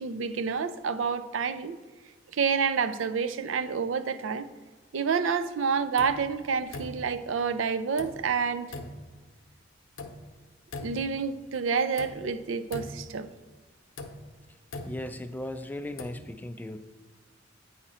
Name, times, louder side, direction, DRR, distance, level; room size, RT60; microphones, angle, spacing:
voice 1, 0.0-1.8 2.3-4.5 4.9-8.7 10.8-13.3, right 6 dB, 75° right, 13 dB, 0.4 m, -28 dB
sound 1, 6.0-6.3 6.7-7.2 8.0-8.3 8.7-9.1 10.0-10.3 10.7-11.2 12.0-12.3 12.7-13.2 14.0-15.5 15.8-16.2, left 2 dB, 80° left, 0.8 m, -41 dB
voice 2, 14.8-16.8, left 1 dB, 10° left, 9 dB, 0.3 m, -37 dB
8.7 x 5.0 x 4.2 m, 1.3 s
head